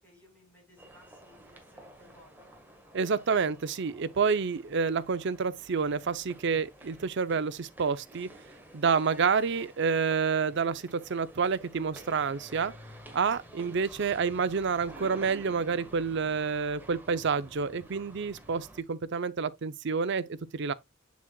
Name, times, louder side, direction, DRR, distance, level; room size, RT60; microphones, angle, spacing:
voice 1, 0.0-2.5, left 1 dB, 10° left, 4.5 m, -59 dB
sound 1, 0.8-18.8, right 1 dB, 10° right, 1.5 m, -51 dB
voice 2, 2.9-8.3 8.7-12.7 13.1-20.7, right 5 dB, 60° right, 0.6 m, -29 dB
7.3 x 7.2 x 2.2 m
head